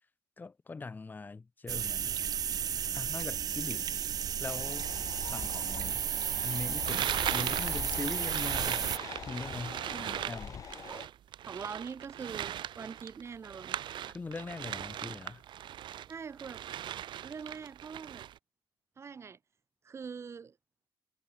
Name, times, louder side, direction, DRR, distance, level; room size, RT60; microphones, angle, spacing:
voice 1, 0.4-2.1 2.9-3.9 4.4-4.9 5.3-6.1 6.4-8.9 9.3-10.6 14.1-15.4, left 4 dB, 25° left, 6.4 m, -41 dB
sound 1, 1.7-9.0, right 9 dB, 50° right, 1.1 m, -33 dB
sound 2, 4.4-11.1, left 7 dB, 45° left, 1.0 m, -44 dB
sound 3, 6.8-16.1 16.4-18.4, right 11 dB, 75° right, 2.3 m, -38 dB
voice 2, 9.9-10.4 10.9-11.1 11.4-13.8 16.1-16.6 17.2-18.3 19.0-19.4 19.8-20.5, right 6 dB, 35° right, 3.4 m, -43 dB
wide cardioid pair, 160°, 8 cm